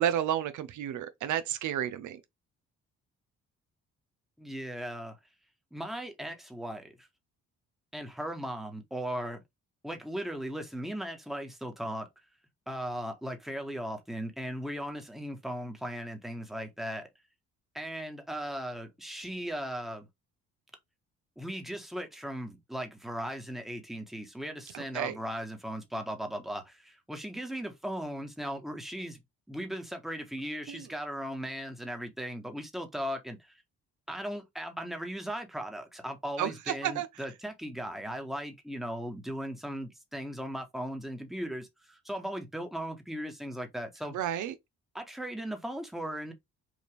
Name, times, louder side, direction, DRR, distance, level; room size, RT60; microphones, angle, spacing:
voice 1, 0.0-2.2 24.7-25.2 30.7-30.9 36.4-37.1 44.1-44.5, right 10 dB, 75° right, 0.7 m, -31 dB
voice 2, 4.4-5.2 5.7-7.1 7.9-9.4 9.8-12.1 12.7-17.1 17.7-20.1 21.4-29.2 29.5-33.5 34.1-44.2 44.9-46.3, equal, ahead, 1.2 m, -37 dB
4.9 x 2.5 x 3.3 m
cardioid pair, 90°, 30 cm